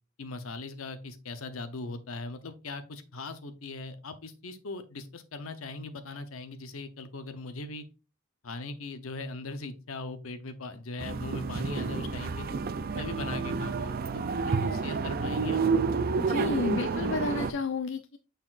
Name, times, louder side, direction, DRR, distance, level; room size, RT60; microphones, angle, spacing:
voice 1, 0.2-7.9 8.4-12.6 12.9-15.6, left 3 dB, 80° left, 10 dB, 0.9 m, -40 dB
sound 1, 11.0-17.5, right 4 dB, 45° right, 0.5 m, -30 dB
voice 2, 16.2-18.2, left 4 dB, 65° left, 8 dB, 0.4 m, -31 dB
6.7 x 5.8 x 2.5 m, 0.31 s
head